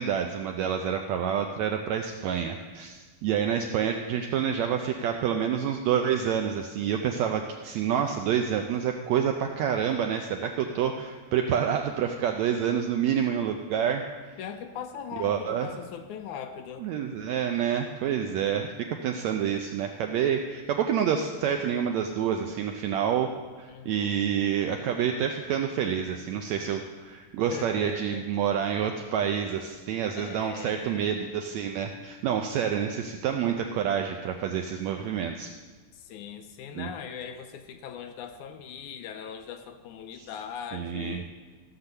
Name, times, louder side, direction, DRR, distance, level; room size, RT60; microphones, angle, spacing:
voice 1, 0.0-14.1 15.2-15.7 16.8-18.7 19.0-23.3 23.6-35.5 36.8-36.9 40.7-41.2, right 8 dB, 80° right, 4 dB, 1.6 m, -28 dB
voice 2, 3.5-4.0 14.4-16.9 23.7-24.2 27.5-28.2 30.2-31.1 35.9-41.3, left 8 dB, 80° left, 7 dB, 1.9 m, -40 dB
15.0 x 5.9 x 6.7 m, 1.4 s
omnidirectional pair, 3.8 m